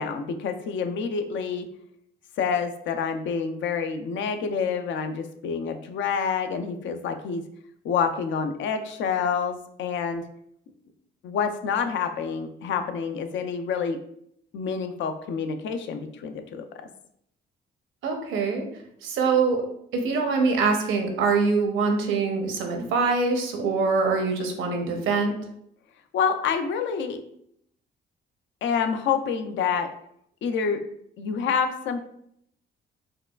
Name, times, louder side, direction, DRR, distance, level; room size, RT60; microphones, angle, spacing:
voice 1, 0.0-1.7 2.4-7.4 7.8-10.2 11.2-14.0 14.5-16.6 26.1-27.2 28.6-29.9 30.4-30.8 31.2-32.0, left 6 dB, 70° left, 7 dB, 0.5 m, -27 dB
voice 2, 18.0-18.6 19.0-19.6 19.9-25.3, right 4 dB, 80° right, 3 dB, 0.7 m, -24 dB
4.6 x 2.3 x 2.3 m, 0.71 s
cardioid pair, 90°, 20 cm